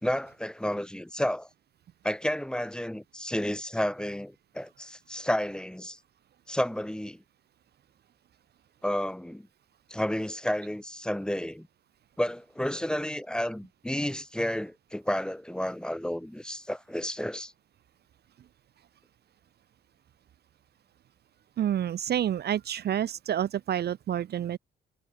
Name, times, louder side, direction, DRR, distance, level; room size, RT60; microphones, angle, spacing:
voice 1, 0.0-1.5 2.0-6.0 6.5-7.2 8.8-9.5 9.9-11.7 12.2-17.5, equal, 5° left, 3.8 m, -31 dB
voice 2, 21.6-24.6, right 10 dB, 55° right, 0.7 m, -28 dB
cardioid pair, 90°, 20 cm